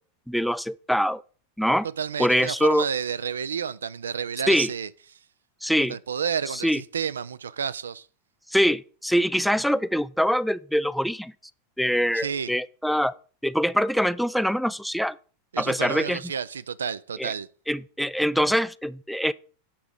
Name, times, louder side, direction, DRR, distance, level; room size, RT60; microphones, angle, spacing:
voice 1, 0.3-1.2 1.6-1.9 2.2-2.9 4.5-4.7 5.6-6.0 6.5-6.8 8.5-11.3 11.8-13.1 13.4-15.2 15.6-16.2 17.2-17.3 17.7-19.3, equal, ahead, 0.3 m, -24 dB
voice 2, 2.0-4.9 5.8-8.1 12.1-12.5 15.5-17.5, right 7 dB, 70° right, 0.4 m, -30 dB
8.5 x 5.9 x 4.8 m
figure-of-eight pair, 85°, 0 cm